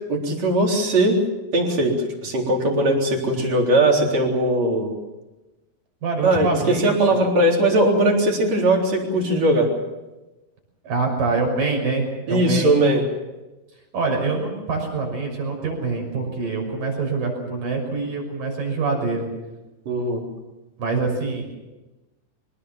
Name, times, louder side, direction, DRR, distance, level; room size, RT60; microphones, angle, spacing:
voice 1, 0.1-1.2 1.5-1.9 2.2-4.9 6.2-9.7 12.3-13.0 19.9-20.2, right 1 dB, 50° right, 0 dB, 4.9 m, -19 dB
voice 2, 6.0-7.2 10.8-12.7 13.9-19.3 20.8-21.6, right 4 dB, 70° right, 2 dB, 7.8 m, -25 dB
24.5 x 19.5 x 7.4 m, 1.1 s
omnidirectional pair, 4.0 m